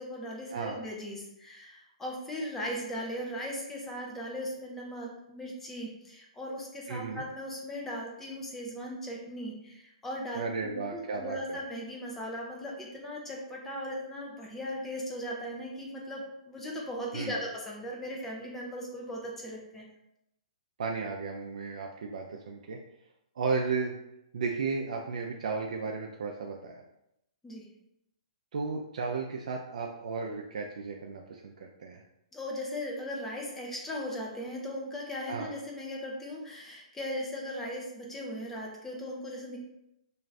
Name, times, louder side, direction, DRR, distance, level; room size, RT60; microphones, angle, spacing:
voice 1, 0.0-19.9 27.4-27.7 32.3-39.6, equal, 5° left, -2 dB, 0.5 m, -38 dB
voice 2, 6.9-7.2 10.3-11.6 17.1-17.3 20.8-22.8 23.4-23.9 24.3-26.8 28.5-32.0 35.3-35.5, right 4 dB, 75° right, 0 dB, 0.4 m, -34 dB
2.4 x 2.4 x 3.1 m, 0.83 s
hypercardioid pair, 165°, 4 cm